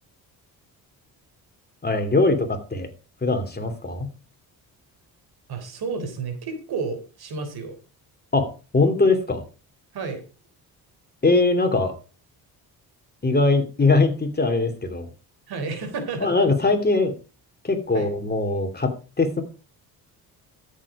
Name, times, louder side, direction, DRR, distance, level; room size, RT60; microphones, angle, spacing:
voice 1, 1.8-2.9 3.2-4.1 8.3-9.4 11.2-11.9 13.2-15.1 16.2-17.1 17.6-19.4, left 3 dB, 25° left, 6 dB, 2.8 m, -21 dB
voice 2, 5.5-7.8 9.9-10.2 15.5-16.3 17.9-18.1, right 4 dB, 70° right, 8 dB, 3.6 m, -31 dB
13.0 x 7.4 x 4.9 m, 0.35 s
cardioid pair, 85°, 39 cm